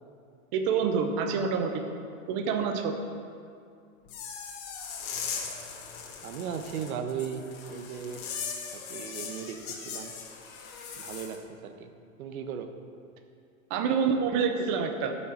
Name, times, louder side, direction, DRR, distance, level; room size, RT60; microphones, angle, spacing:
voice 1, 0.5-1.8 2.3-2.9 13.7-15.2, right 6 dB, 25° right, 5 dB, 0.4 m, -27 dB
sound 1, 4.1-11.4, left 6 dB, 45° left, 1.7 m, -39 dB
voice 2, 6.2-8.2 8.7-10.1 11.0-11.9 12.2-12.7, right 7 dB, 75° right, 7 dB, 1.1 m, -37 dB
12.5 x 5.8 x 6.5 m, 2.3 s
supercardioid pair, 155°, 42 cm